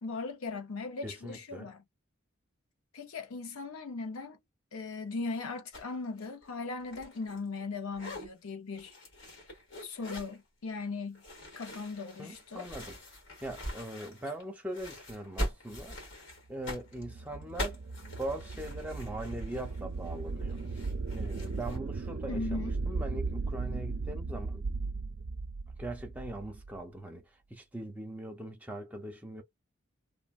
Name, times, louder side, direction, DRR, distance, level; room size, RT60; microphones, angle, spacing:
voice 1, 0.0-1.8 2.9-4.4 4.7-8.9 9.8-11.2 11.6-12.7 22.3-22.8, left 3 dB, 85° left, 0.6 m, -38 dB
voice 2, 1.0-1.7 12.2-13.0 13.4-16.0 16.5-17.8 18.2-20.6 21.1-24.6 25.8-27.2 27.5-29.4, right 1 dB, 10° right, 0.7 m, -41 dB
sound 1, 5.7-5.9 6.2-7.6 7.9-8.3 8.7-10.4 11.1-14.4 14.7-21.8, equal, 60° left, 1.8 m, -42 dB
sound 2, 16.7-26.8, right 3 dB, 65° right, 0.5 m, -37 dB
3.0 x 2.2 x 2.4 m
head